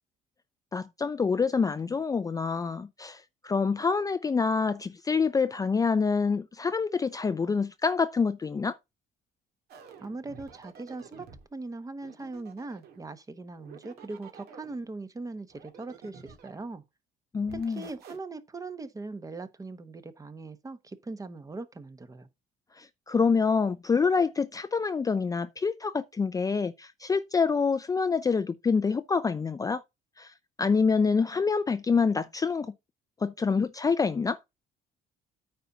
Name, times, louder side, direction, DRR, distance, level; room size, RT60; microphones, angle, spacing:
voice 1, 0.7-8.8 17.3-17.8 22.8-29.8 30.2-32.7 33.2-34.4, left 5 dB, 20° left, 0.5 m, -26 dB
sound 1, 9.7-11.5 12.0-13.1 13.5-14.8 15.5-16.7 17.4-18.2, right 6 dB, 70° right, 2.0 m, -50 dB
voice 2, 10.0-16.8 17.5-22.3, right 3 dB, 20° right, 1.0 m, -40 dB
9.2 x 4.1 x 5.9 m
cardioid pair, 110°, 17 cm